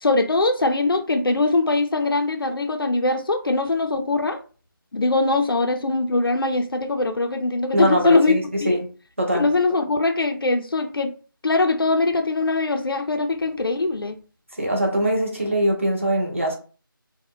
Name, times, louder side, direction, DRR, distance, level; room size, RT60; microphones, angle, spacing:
voice 1, 0.0-4.4 4.9-8.4 8.6-8.8 9.3-11.1 11.4-14.2, left 3 dB, 80° left, 0.4 m, -21 dB
voice 2, 7.7-8.8 9.2-9.5 14.6-16.5, right 1 dB, 35° right, 0.7 m, -22 dB
2.2 x 2.1 x 3.5 m
figure-of-eight pair, 180°, 12 cm